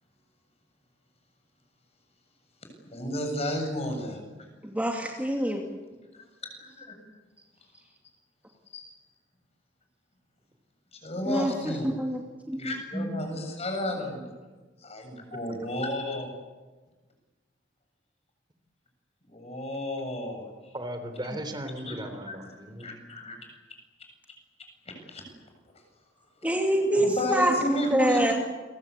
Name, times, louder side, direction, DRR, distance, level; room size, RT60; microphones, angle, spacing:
voice 1, 2.9-4.2 6.1-6.9 8.7-8.8 10.9-11.9 12.6-14.2 14.8-16.3 19.3-20.7 21.9-22.0 22.3-22.4 22.8-23.4 24.0-24.1 24.6-25.2 26.9-28.3, left 1 dB, 35° left, 4 dB, 7.6 m, -32 dB
voice 2, 4.6-5.7 11.3-11.5 12.0-12.2 12.5-12.6 12.9-13.1 26.4-27.5 27.9-28.3, right 1 dB, 10° right, 0 dB, 2.6 m, -25 dB
voice 3, 20.7-22.9, right 1 dB, 25° right, 7 dB, 3.5 m, -37 dB
30.0 x 23.5 x 8.5 m, 1.3 s
head